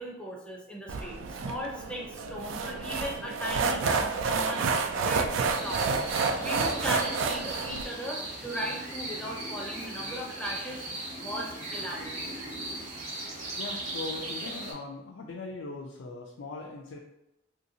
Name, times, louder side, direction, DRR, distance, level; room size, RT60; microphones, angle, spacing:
voice 1, 0.0-4.7 4.9-6.1 6.4-10.8 11.1-12.3, equal, 5° left, -2 dB, 0.5 m, -37 dB
sound 1, 0.9-7.8, right 4 dB, 85° right, 0.3 m, -29 dB
sound 2, 5.5-14.7, right 2 dB, 35° right, 0.8 m, -37 dB
voice 2, 13.6-17.0, left 3 dB, 75° left, -1 dB, 0.4 m, -40 dB
3.1 x 2.8 x 2.7 m, 0.91 s
head